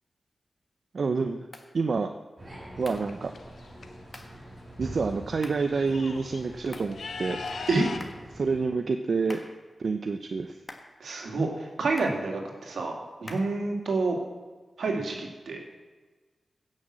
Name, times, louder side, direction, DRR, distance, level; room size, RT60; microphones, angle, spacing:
voice 1, 0.9-1.5 1.7-2.1 2.8-3.3 4.8-7.4 8.3-9.4 9.8-10.6, right 4 dB, 65° right, 6 dB, 0.7 m, -28 dB
sound 1, 1.5-1.7 2.8-3.1 4.1-4.4 5.4-5.7 6.7-7.0 8.0-8.3 9.3-9.6 10.7-11.0 12.0-12.3 13.3-13.6, left 2 dB, 35° left, 1.6 m, -45 dB
sound 2, 2.4-8.7, right 1 dB, 35° right, 5.2 m, -45 dB
sound 3, 2.8-3.9 5.0-5.1 5.4-8.0, left 4 dB, 80° left, 0.9 m, -39 dB
voice 2, 11.0-14.2 14.8-15.9, right 3 dB, 85° right, 1 dB, 2.3 m, -28 dB
16.0 x 6.4 x 7.5 m, 1.3 s
cardioid pair, 70°, 0 cm